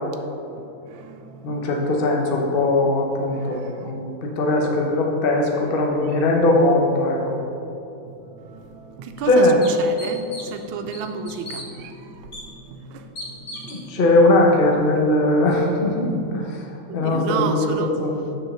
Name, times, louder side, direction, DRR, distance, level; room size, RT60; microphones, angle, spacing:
voice 1, 0.9-1.7 3.5-3.6 8.1-9.5 9.8-14.0 16.9-17.9, right 6 dB, 75° right, 6 dB, 1.3 m, -33 dB
voice 2, 1.4-7.4 9.2-9.6 13.7-16.2 16.9-18.1, left 2 dB, 60° left, 0 dB, 0.5 m, -19 dB
sound 1, 8.6-8.7 9.2-9.3 9.6-10.6 10.9-11.6 12.3-12.4 13.2-13.8, left 1 dB, 35° left, 1.0 m, -36 dB
6.2 x 4.6 x 6.5 m, 2.8 s
omnidirectional pair, 2.4 m